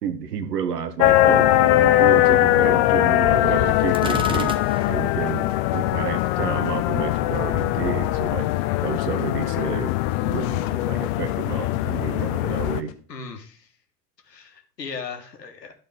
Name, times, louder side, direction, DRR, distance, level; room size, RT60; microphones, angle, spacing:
voice 1, 0.0-4.5 4.9-12.9, right 7 dB, 75° right, 10 dB, 1.1 m, -30 dB
sound 1, 1.0-12.8, left 15 dB, 40° left, 0.4 m, -21 dB
sound 2, 3.7-12.9, left 9 dB, 55° left, 1.1 m, -44 dB
Gunshot gunfire, 3.9-5.2, right 4 dB, 10° right, 0.5 m, -33 dB
voice 2, 13.1-13.7 14.3-15.7, left 5 dB, 85° left, 4 dB, 1.4 m, -37 dB
12.0 x 4.3 x 3.6 m, 0.41 s
figure-of-eight pair, 80°, 48 cm